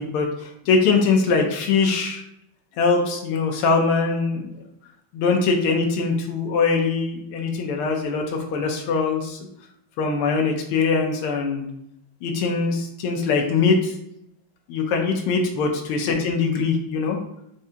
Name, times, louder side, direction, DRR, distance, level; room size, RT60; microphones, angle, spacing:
voice 1, 0.0-2.2 2.8-4.4 5.1-9.4 10.0-11.7 12.2-13.9 14.7-17.2, left 4 dB, 85° left, 2 dB, 1.5 m, -22 dB
4.7 x 3.2 x 2.7 m, 0.76 s
omnidirectional pair, 2.4 m